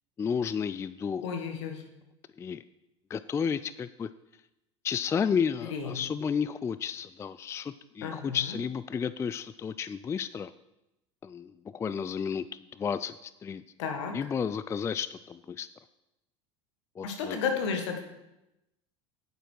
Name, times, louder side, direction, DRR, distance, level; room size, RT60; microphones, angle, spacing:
voice 1, 0.2-1.2 2.4-2.6 3.1-4.1 4.8-10.5 11.2-12.4 12.8-13.6 14.1-15.7 17.0-17.4, left 7 dB, 20° left, 15 dB, 0.3 m, -32 dB
voice 2, 1.2-1.8 5.6-6.0 8.0-8.6 13.8-14.1 17.0-18.0, left 6 dB, 70° left, 4 dB, 1.7 m, -33 dB
9.3 x 8.8 x 4.6 m, 0.92 s
hypercardioid pair, 75°, 15 cm